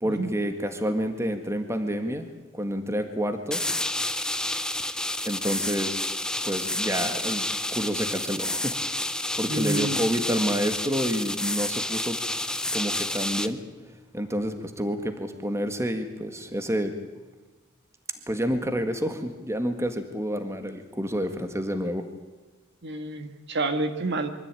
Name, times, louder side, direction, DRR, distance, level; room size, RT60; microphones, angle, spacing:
voice 1, 0.0-2.3 2.5-3.6 5.3-6.0 6.4-7.5 7.7-8.8 9.4-12.2 12.7-13.6 14.1-16.9 18.3-22.1, equal, 15° right, 7 dB, 1.8 m, -29 dB
sound 1, 3.5-13.5, left 1 dB, 5° left, 0.8 m, -29 dB
voice 2, 9.5-10.0 22.8-24.3, right 2 dB, 55° right, 7 dB, 1.7 m, -29 dB
24.0 x 14.0 x 9.2 m, 1.3 s
head